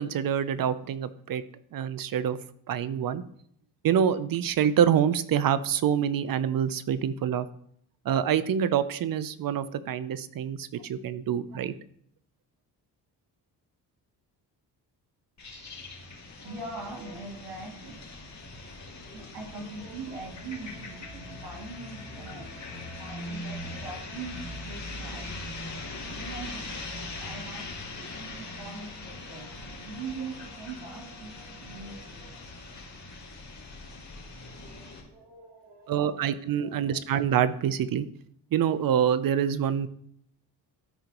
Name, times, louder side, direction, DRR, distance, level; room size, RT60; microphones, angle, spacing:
voice 1, 0.0-1.4 1.7-2.4 2.7-3.2 3.8-7.5 8.1-11.7 35.9-38.1 38.5-39.9, right 9 dB, 55° right, 15 dB, 0.7 m, -26 dB
sound 1, 15.4-35.0, left 2 dB, 40° left, 2.4 m, -41 dB
voice 2, 16.4-18.0 18.6-25.3 26.1-32.5 34.4-36.3 36.6-37.0, right 3 dB, 90° right, -1 dB, 3.0 m, -42 dB
12.5 x 5.1 x 3.0 m, 0.68 s
cardioid pair, 75°, 41 cm